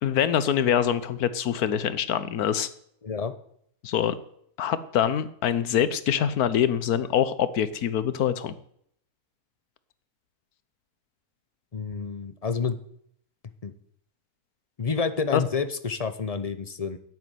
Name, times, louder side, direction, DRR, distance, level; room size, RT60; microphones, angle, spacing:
voice 1, 0.0-2.7 3.8-4.1 4.6-8.5 15.3-15.4, left 9 dB, 85° left, 15 dB, 1.4 m, -24 dB
voice 2, 3.0-3.3 11.7-12.8 13.6-13.8 14.8-17.0, left 5 dB, 35° left, 11 dB, 0.7 m, -29 dB
10.5 x 8.5 x 9.3 m, 0.69 s
omnidirectional pair, 1.6 m